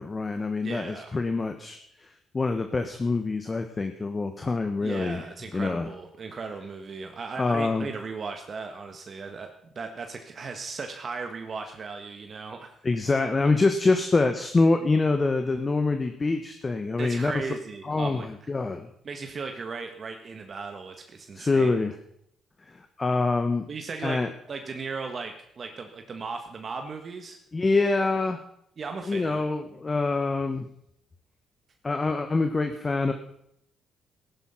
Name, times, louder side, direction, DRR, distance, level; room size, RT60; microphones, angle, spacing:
voice 1, 0.0-1.8 2.3-5.2 5.5-5.9 7.4-7.9 12.8-17.3 17.8-18.9 21.3-21.9 22.7-23.7 24.0-24.3 27.5-28.4 29.1-30.6 31.8-33.1, left 3 dB, 30° left, 7 dB, 1.4 m, -25 dB
voice 2, 0.6-1.2 4.8-12.7 17.0-18.3 19.0-21.8 23.7-27.4 28.8-29.4, right 4 dB, 45° right, 5 dB, 1.7 m, -37 dB
15.0 x 11.5 x 5.8 m, 0.71 s
cardioid pair, 90°, 0 cm